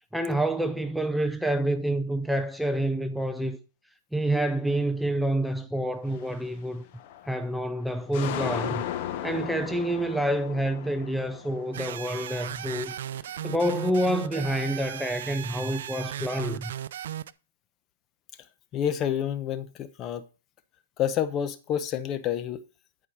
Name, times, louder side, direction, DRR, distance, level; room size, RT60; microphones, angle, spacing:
voice 1, 0.1-3.6 4.1-6.8 7.3-8.8 9.2-12.9 13.4-16.7, right 1 dB, ahead, 0.5 m, -28 dB
sound 1, 6.1-6.5 6.9-7.5 7.9-13.3 13.5-14.7, left 11 dB, 45° left, 1.1 m, -37 dB
sound 2, 11.7-17.3, right 10 dB, 70° right, 0.5 m, -36 dB
voice 2, 18.7-20.2 21.0-22.6, left 9 dB, 30° left, 0.8 m, -28 dB
11.0 x 4.7 x 4.8 m
hypercardioid pair, 140°, 0 cm